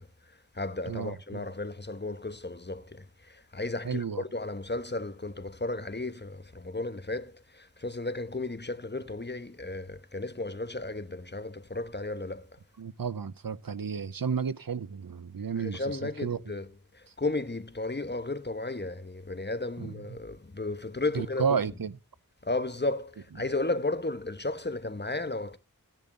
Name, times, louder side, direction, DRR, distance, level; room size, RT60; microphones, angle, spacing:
voice 1, 0.0-12.6 15.6-16.7 16.9-21.5 22.4-25.6, left 2 dB, 30° left, 1.2 m, -34 dB
voice 2, 0.9-1.4 3.8-4.2 12.8-16.4 19.8-20.0 21.1-21.9, right 6 dB, 80° right, 0.9 m, -32 dB
16.0 x 11.0 x 3.9 m
wide cardioid pair, 60°, 34 cm